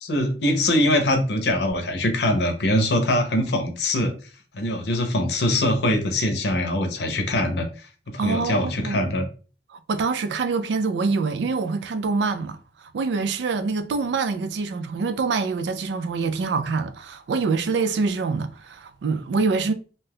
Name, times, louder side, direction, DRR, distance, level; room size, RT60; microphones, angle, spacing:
voice 1, 0.0-4.1 4.5-7.7 8.1-9.3, left 1 dB, 65° left, 0.6 m, -23 dB
voice 2, 8.2-9.1 9.7-19.7, right 4 dB, 75° right, 0.3 m, -25 dB
2.7 x 2.3 x 3.3 m
head